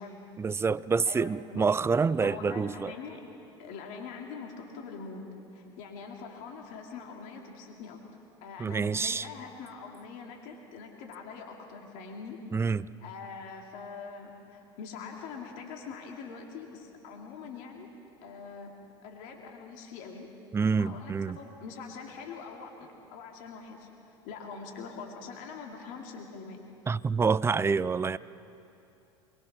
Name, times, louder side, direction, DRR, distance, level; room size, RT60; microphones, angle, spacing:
voice 1, 0.4-2.9 8.6-9.3 12.5-12.9 20.5-21.4 26.9-28.2, right 5 dB, 15° right, 0.4 m, -27 dB
voice 2, 1.1-1.7 2.2-3.3 3.6-5.2 5.5-8.0 8.4-12.4 13.0-17.9 18.2-18.7 19.0-20.3 20.8-26.6, left 5 dB, 60° left, 2.6 m, -43 dB
22.5 x 21.5 x 6.1 m
hypercardioid pair, 80°, 15 cm